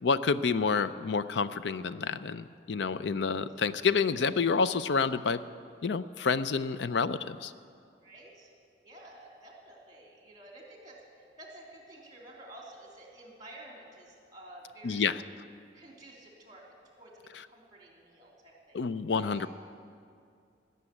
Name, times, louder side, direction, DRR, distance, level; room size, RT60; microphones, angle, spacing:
voice 1, 0.0-5.4 5.8-7.5 14.8-15.2 18.7-19.5, left 5 dB, 80° left, 14 dB, 0.5 m, -28 dB
voice 2, 8.0-8.5 8.8-15.1 15.7-18.8 19.1-19.5, right 1 dB, 20° right, -2 dB, 3.0 m, -51 dB
17.0 x 6.8 x 9.8 m, 2.3 s
head